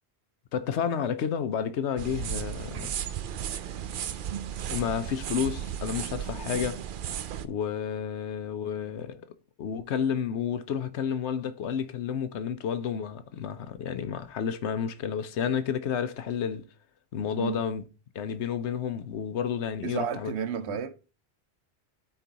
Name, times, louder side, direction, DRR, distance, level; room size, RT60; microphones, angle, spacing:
voice 1, 0.5-2.9 4.7-6.8 7.4-9.2 9.6-16.6 17.1-17.8 18.1-20.3 20.7-20.8, left 8 dB, 80° left, 1.0 m, -31 dB
sound 1, 2.0-7.5, right 9 dB, 60° right, 0.6 m, -34 dB
voice 2, 19.8-20.9, right 8 dB, 75° right, 1.0 m, -32 dB
13.5 x 4.6 x 2.8 m
omnidirectional pair, 1.1 m